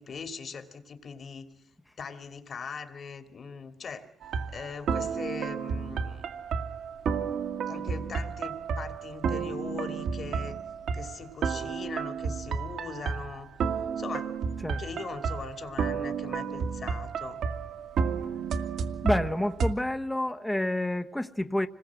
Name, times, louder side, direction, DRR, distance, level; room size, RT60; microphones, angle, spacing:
voice 1, 0.0-1.5 2.0-4.1 4.5-6.2 7.7-10.6 10.9-13.5 14.0-14.3 14.8-17.4, left 5 dB, 50° left, 2.8 m, -40 dB
sound 1, 4.2-19.7, right 6 dB, 70° right, 2.1 m, -32 dB
voice 2, 19.0-21.7, left 1 dB, 10° left, 1.1 m, -28 dB
26.0 x 21.0 x 7.6 m
cardioid pair, 90°, 0 cm